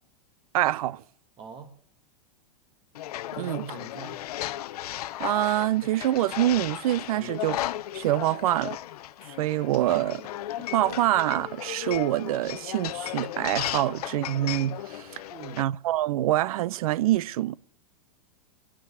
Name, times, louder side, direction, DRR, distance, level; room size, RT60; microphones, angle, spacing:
voice 1, 0.5-1.0 3.4-3.6 5.2-7.6 7.9-8.8 9.4-10.2 10.6-15.2 15.6-17.6, right 14 dB, 70° right, 0.5 m, -25 dB
voice 2, 1.4-1.8 3.3-4.2 15.3-15.7, right 6 dB, 25° right, 1.5 m, -42 dB
sound 1, 2.9-15.6, left 13 dB, 80° left, 0.6 m, -35 dB
16.0 x 6.3 x 9.5 m
supercardioid pair, 150°, 19 cm